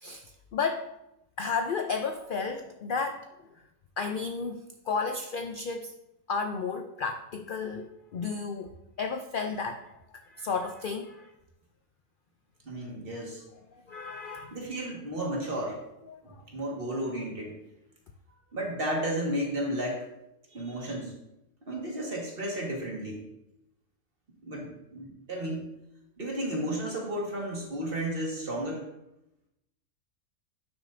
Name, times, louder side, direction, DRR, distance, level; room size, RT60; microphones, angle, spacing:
voice 1, 0.0-0.9 1.4-3.3 4.0-5.9 6.3-8.7 9.0-11.3 13.9-14.6 16.1-16.4, left 5 dB, 70° left, 6 dB, 0.5 m, -33 dB
voice 2, 12.6-13.4 14.5-15.8 16.2-17.6 18.5-20.1 20.5-21.1 21.6-23.2 24.4-25.7 26.2-28.9, right 1 dB, 40° right, -1 dB, 1.8 m, -33 dB
10.5 x 6.3 x 2.6 m, 0.87 s
omnidirectional pair, 1.5 m